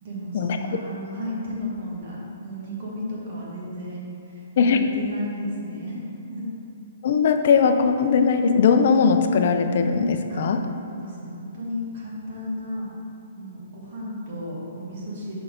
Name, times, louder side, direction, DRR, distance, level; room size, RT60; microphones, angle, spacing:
voice 1, 0.0-6.5 10.3-10.4 10.9-12.9 13.3-15.4, equal, 40° right, -5 dB, 1.4 m, -34 dB
voice 2, 7.0-10.6, left 5 dB, 45° left, 7 dB, 0.4 m, -19 dB
5.6 x 4.2 x 5.0 m, 2.6 s
hypercardioid pair, 170°, 0 cm